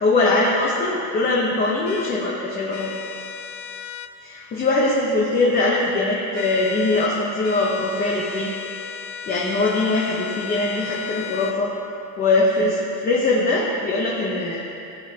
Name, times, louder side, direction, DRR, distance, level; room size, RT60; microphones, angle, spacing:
voice 1, 0.0-2.9 4.2-8.5 9.3-11.7 12.2-14.7, left 2 dB, 20° left, -4 dB, 0.8 m, -21 dB
sound 1, 1.9-2.1 2.7-4.1 6.3-7.1 7.4-11.6, left 8 dB, 40° left, 0.4 m, -35 dB
16.0 x 7.5 x 2.9 m, 2.7 s
cardioid pair, 175°, 41 cm